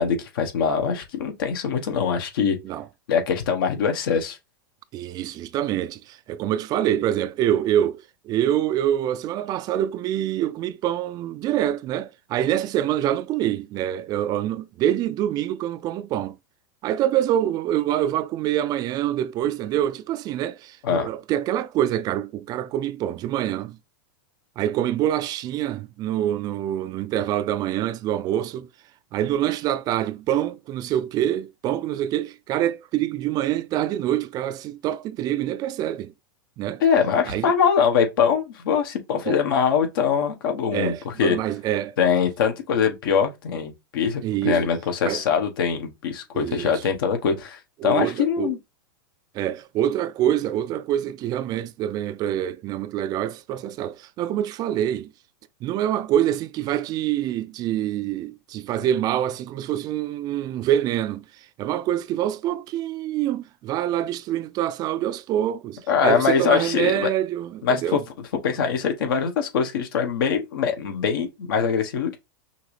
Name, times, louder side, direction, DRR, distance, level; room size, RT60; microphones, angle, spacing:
voice 1, 0.0-2.6 3.1-4.4 20.8-21.1 36.8-41.4 42.0-48.6 65.9-67.1 67.6-68.0 68.4-72.2, left 6 dB, 70° left, 1.2 m, -23 dB
voice 2, 2.4-2.8 4.9-16.4 16.8-23.8 24.6-28.7 29.1-36.1 36.6-36.8 37.3-37.5 39.3-39.4 40.7-41.9 44.2-44.7 45.1-45.2 46.3-46.8 47.8-48.5 49.3-55.1 55.6-68.0, right 11 dB, 35° right, 0.4 m, -25 dB
5.7 x 2.6 x 3.3 m
hypercardioid pair, 130°, 12 cm